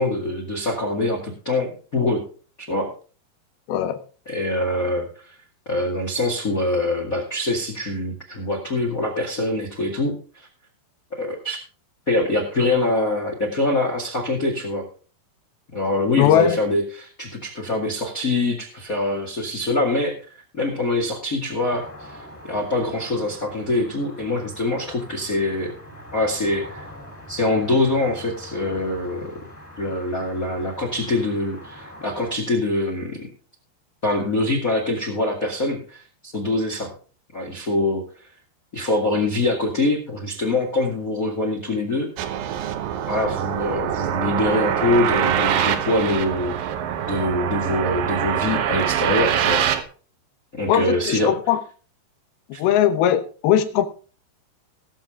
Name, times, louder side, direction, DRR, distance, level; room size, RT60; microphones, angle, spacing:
voice 1, 0.0-2.2 2.7-2.9 4.2-5.2 5.7-10.5 11.1-11.6 12.1-14.8 15.7-25.7 26.1-26.9 27.3-29.4 29.8-33.3 34.0-36.9 37.3-38.0 38.7-42.1 43.1-46.7 47.1-49.6 50.5-51.3 52.5-52.6, left 2 dB, 35° left, 0 dB, 1.5 m, -24 dB
voice 2, 3.7-4.0 16.2-16.6 50.7-51.6 52.6-53.9, left 10 dB, 75° left, 9 dB, 2.6 m, -19 dB
sound 1, 21.7-32.3, left 1 dB, 5° left, 2.0 m, -43 dB
sound 2, 42.2-49.8, right 9 dB, 70° right, 2.3 m, -24 dB
19.0 x 7.2 x 3.7 m, 0.39 s
omnidirectional pair, 5.1 m